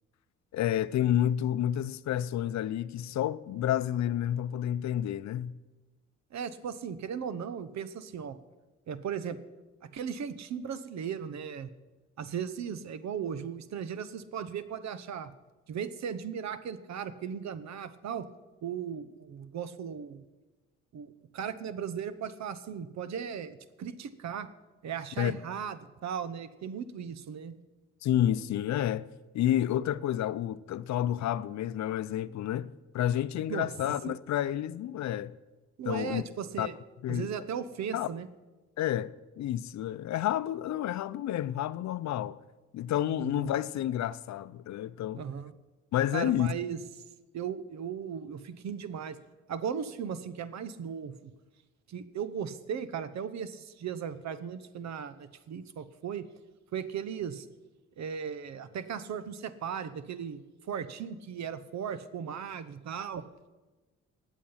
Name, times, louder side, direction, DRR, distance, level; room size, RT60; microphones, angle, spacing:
voice 1, 0.5-5.5 25.2-25.4 28.0-29.1 29.3-35.3 35.9-36.2 36.6-36.7 37.0-37.3 37.9-38.1 38.8-39.1 39.4-42.4 42.7-45.2 45.9-46.5, left 11 dB, 65° left, 0.6 m, -30 dB
voice 2, 6.3-8.4 8.9-9.4 9.9-11.7 12.2-15.3 15.7-18.3 18.6-20.2 20.9-24.5 24.8-27.5 33.5-33.7 34.1-34.2 35.8-36.7 37.1-38.3 43.2-43.5 45.2-45.5 46.1-46.8 47.3-49.2 49.5-51.1 51.9-56.3 56.7-57.5 58.0-63.2, right 7 dB, 65° right, 1.0 m, -37 dB
19.0 x 7.4 x 5.7 m
cardioid pair, 90°, 30 cm